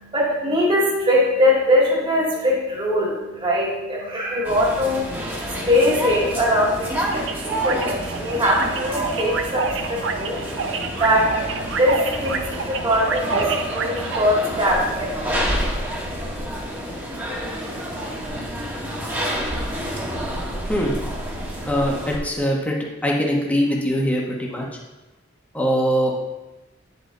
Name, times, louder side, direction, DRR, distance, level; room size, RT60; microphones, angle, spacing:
voice 1, 0.0-15.6, left 1 dB, 25° right, -4 dB, 2.2 m, -22 dB
sound 1, 4.4-22.2, equal, 10° right, 1.5 m, -29 dB
sound 2, 7.1-14.2, right 5 dB, 75° right, 0.6 m, -29 dB
voice 2, 21.7-22.7 23.0-24.6 25.5-26.1, equal, 10° left, -3 dB, 1.3 m, -22 dB
9.5 x 5.4 x 3.9 m, 1.1 s
head